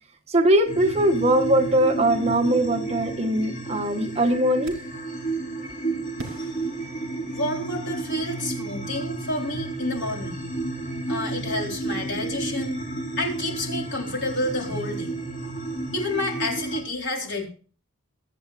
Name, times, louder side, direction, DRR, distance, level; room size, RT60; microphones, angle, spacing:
voice 1, 0.3-4.7, right 1 dB, 30° right, 1.2 m, -21 dB
sound 1, 0.6-16.8, right 3 dB, 35° left, 2.7 m, -32 dB
sound 2, 4.6-5.1 6.2-7.7, right 1 dB, 65° right, 3.2 m, -42 dB
voice 2, 7.3-10.5 11.1-12.8 13.2-15.2 15.9-17.4, left 1 dB, 50° left, 3.9 m, -29 dB
23.0 x 7.9 x 2.5 m
head